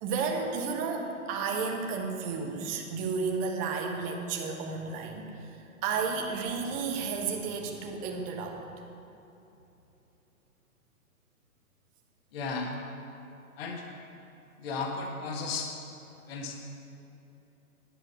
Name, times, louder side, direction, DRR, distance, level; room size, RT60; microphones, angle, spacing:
voice 1, 0.0-8.6, right 5 dB, 20° right, 2 dB, 0.9 m, -32 dB
voice 2, 12.3-12.7 13.6-13.8 14.6-15.7 16.3-16.5, left 4 dB, 40° left, 2 dB, 1.3 m, -34 dB
10.5 x 7.6 x 6.0 m, 2.9 s
figure-of-eight pair, 125°, 44 cm